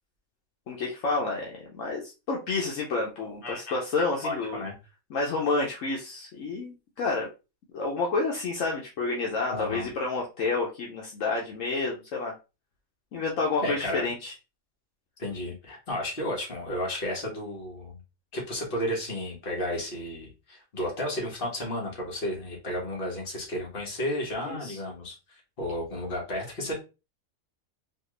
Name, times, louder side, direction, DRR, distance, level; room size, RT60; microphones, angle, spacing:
voice 1, 0.7-4.6 5.1-7.3 7.7-12.3 13.1-14.3 24.5-24.8, left 3 dB, 70° left, -2 dB, 1.1 m, -29 dB
voice 2, 3.4-3.8 4.2-4.7 9.5-9.9 13.6-14.0 15.2-18.0 18.3-26.7, left 1 dB, 40° left, -2 dB, 1.6 m, -33 dB
4.2 x 2.4 x 3.1 m, 0.29 s
omnidirectional pair, 1.4 m